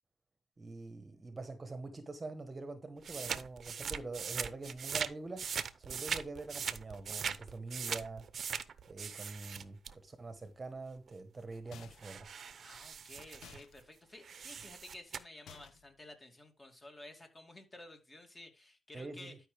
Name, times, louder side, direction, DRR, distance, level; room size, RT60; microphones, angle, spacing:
voice 1, 0.6-8.3 8.9-12.3 18.9-19.4, right 3 dB, 25° right, 1.2 m, -45 dB
sound 1, 3.0-5.1 5.4-9.9 11.1-11.2 11.5-13.8 14.2-15.2, right 7 dB, 50° right, 0.8 m, -40 dB
sound 2, 11.7-12.2 13.4-13.7 15.5-16.0, left 7 dB, 70° left, 0.9 m, -54 dB
voice 2, 12.6-19.4, left 2 dB, 20° left, 2.6 m, -53 dB
12.0 x 5.4 x 3.4 m
cardioid pair, 90°, 0 cm